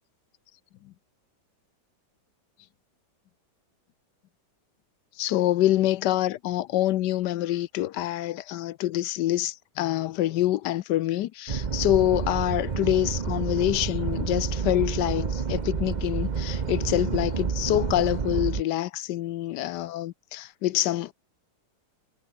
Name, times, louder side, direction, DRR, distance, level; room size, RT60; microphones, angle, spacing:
voice 1, 5.2-21.1, left 14 dB, 75° left, 1.2 m, -26 dB
sound 1, 11.5-18.6, right 6 dB, 35° right, 0.7 m, -29 dB
omnidirectional pair, 1.9 m